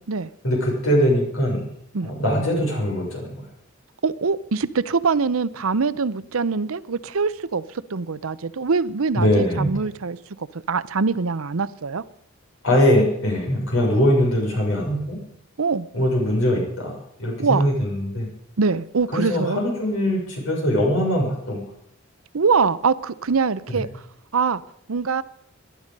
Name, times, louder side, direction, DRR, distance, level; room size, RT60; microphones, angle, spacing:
voice 1, 0.4-1.6 2.0-3.4 9.1-9.9 12.6-15.2 15.9-18.3 19.1-21.6 23.7-23.8, equal, 80° left, 6.6 m, -21 dB
voice 2, 4.0-12.0 15.6-15.9 17.4-17.7 18.6-19.6 22.3-23.9 24.3-24.6 24.9-25.2, right 5 dB, 85° right, 0.7 m, -23 dB
19.0 x 11.5 x 5.3 m
head